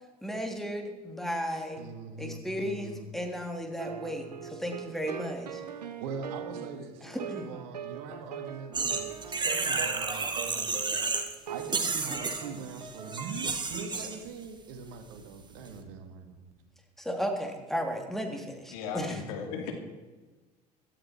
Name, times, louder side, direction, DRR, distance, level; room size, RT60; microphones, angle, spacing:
voice 1, 0.2-1.8 2.2-5.8 7.0-7.5 17.0-19.2, equal, ahead, 3 dB, 3.1 m, -35 dB
voice 2, 1.8-3.1 5.7-10.8 11.5-16.5, right 5 dB, 65° right, 6 dB, 2.2 m, -42 dB
sound 1, 3.8-13.3, right 8 dB, 85° right, 1.0 m, -42 dB
sound 2, 8.7-11.3 11.6-14.2, right 4 dB, 20° right, 2.1 m, -31 dB
voice 3, 18.7-19.7, left 6 dB, 70° left, 4 dB, 2.6 m, -36 dB
16.5 x 12.5 x 4.6 m, 1.2 s
hypercardioid pair, 70°, 20 cm